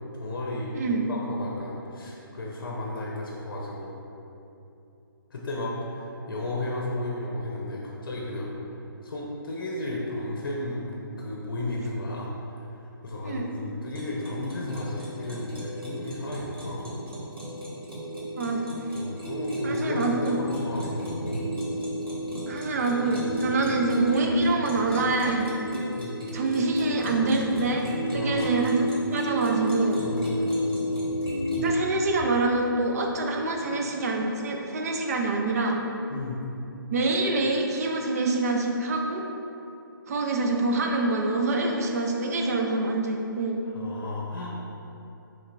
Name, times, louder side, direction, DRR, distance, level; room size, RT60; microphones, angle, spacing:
voice 1, 0.0-0.8 1.1-4.0 5.3-8.5 9.0-12.7 13.0-17.0 18.9-21.4 25.9-26.4 28.1-28.6 30.0-30.6 36.1-36.4 43.7-44.5, left 1 dB, 60° left, -3 dB, 0.7 m, -33 dB
voice 2, 0.7-1.1 13.2-13.5 18.4-18.7 19.6-20.4 22.5-25.5 26.3-27.9 28.1-30.0 31.6-35.8 36.9-39.2 40.1-43.6, right 3 dB, 40° right, 1 dB, 0.5 m, -26 dB
sound 1, 13.9-31.7, equal, 75° right, 1.4 m, -32 dB
sound 2, 20.4-25.6 25.9-34.4 34.8-35.5, right 1 dB, 5° right, 1.0 m, -41 dB
5.6 x 3.2 x 2.6 m, 2.9 s
figure-of-eight pair, 145°, 12 cm